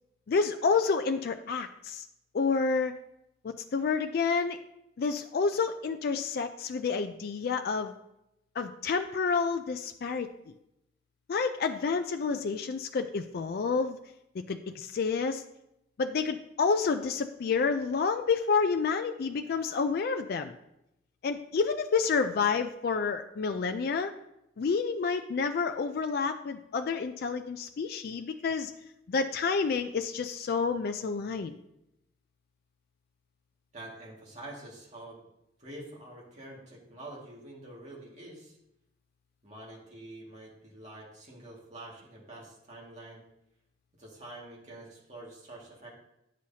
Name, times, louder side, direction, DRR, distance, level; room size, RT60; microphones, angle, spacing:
voice 1, 0.3-2.0 2.3-2.9 3.4-4.6 5.0-7.9 8.6-10.3 11.3-14.0 14.3-15.4 16.0-20.5 21.2-24.1 24.6-28.7 29.1-31.6, left 5 dB, 55° left, 7 dB, 0.4 m, -29 dB
voice 2, 33.7-35.2 35.6-38.6 39.4-43.2 44.0-45.9, right 1 dB, 40° right, -4 dB, 2.0 m, -46 dB
9.8 x 6.2 x 2.8 m, 0.84 s
head